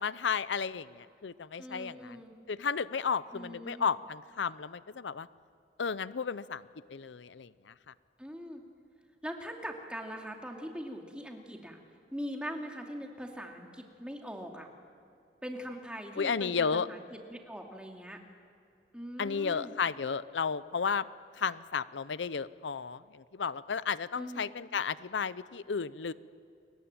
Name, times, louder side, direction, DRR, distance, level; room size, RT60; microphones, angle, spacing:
voice 1, 0.0-2.2 2.5-5.3 5.8-6.6 6.9-7.7 16.2-16.9 19.2-21.1 21.4-26.1, left 6 dB, 90° left, 16 dB, 0.6 m, -33 dB
voice 2, 1.6-2.4 3.3-3.9 8.2-8.6 9.2-11.8 12.1-14.7 15.4-18.2 18.9-19.7 24.2-24.5, equal, 5° right, 2 dB, 2.5 m, -41 dB
29.5 x 22.0 x 9.0 m, 2.4 s
head